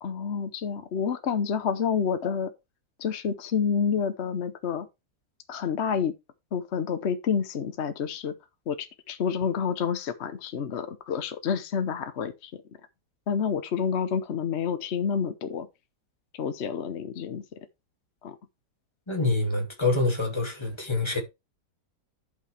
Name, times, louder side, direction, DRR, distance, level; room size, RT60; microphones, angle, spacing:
voice 1, 0.0-2.5 3.0-4.9 5.5-6.1 6.5-8.3 8.7-12.5 13.3-15.7 16.3-17.4 18.2-18.4, left 7 dB, 50° left, 1.0 m, -28 dB
voice 2, 19.1-21.2, left 2 dB, 15° left, 2.6 m, -26 dB
11.5 x 5.8 x 3.4 m
omnidirectional pair, 1.7 m